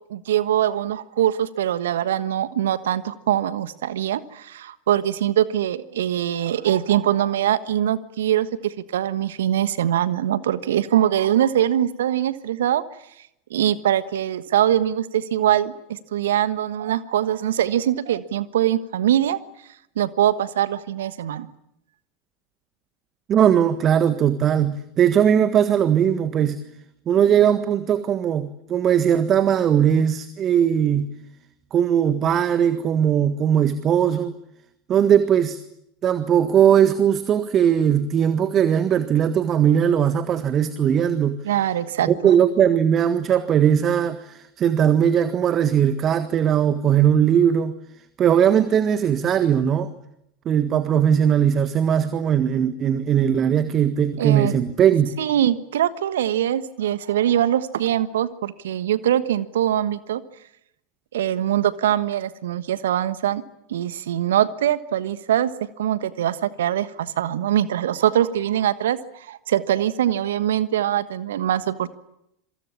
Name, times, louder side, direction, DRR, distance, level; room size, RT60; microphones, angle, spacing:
voice 1, 0.1-12.8 13.5-19.4 20.0-21.5 41.4-42.3 54.2-54.5 55.2-60.2 61.1-63.4 63.7-65.5 65.8-71.9, right 11 dB, 65° right, 15 dB, 1.3 m, -22 dB
voice 2, 23.3-26.6 27.1-31.1 31.7-34.3 34.9-35.6 36.0-41.4 42.1-47.7 48.2-49.9 50.4-55.1, right 9 dB, 35° right, 12 dB, 1.6 m, -19 dB
27.0 x 23.5 x 8.7 m, 0.79 s
figure-of-eight pair, 85°, 0 cm